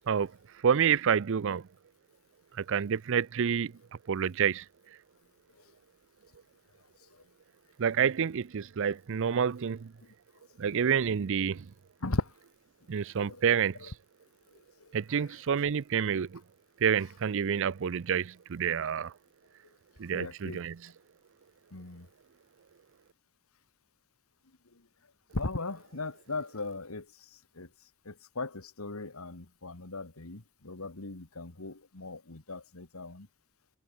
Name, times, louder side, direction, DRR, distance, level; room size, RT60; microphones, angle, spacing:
voice 1, 0.6-1.6 2.6-3.7 4.1-4.6 7.8-9.9 10.6-11.7 12.9-13.9 14.9-16.4 16.8-19.1 20.0-20.9, right 7 dB, 60° right, 0.5 m, -28 dB
voice 2, 20.1-20.6 21.7-22.1 25.3-27.1 27.6-27.7 28.1-33.3, left 2 dB, 85° left, 1.9 m, -37 dB
head